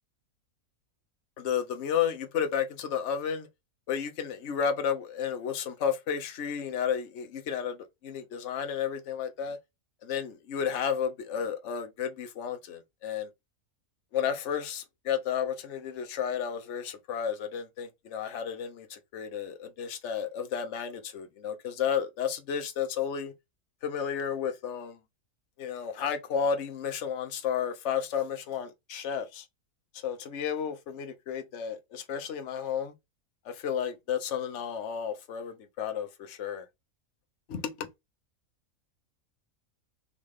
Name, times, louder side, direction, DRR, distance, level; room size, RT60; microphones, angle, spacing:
voice 1, 1.4-3.5 3.9-7.8 8.0-9.6 10.0-13.3 14.1-23.3 23.8-25.0 25.6-29.4 30.0-32.9 33.5-36.6 37.5-37.9, left 8 dB, 60° left, 1.1 m, -32 dB
3.7 x 3.2 x 3.5 m
omnidirectional pair, 1.5 m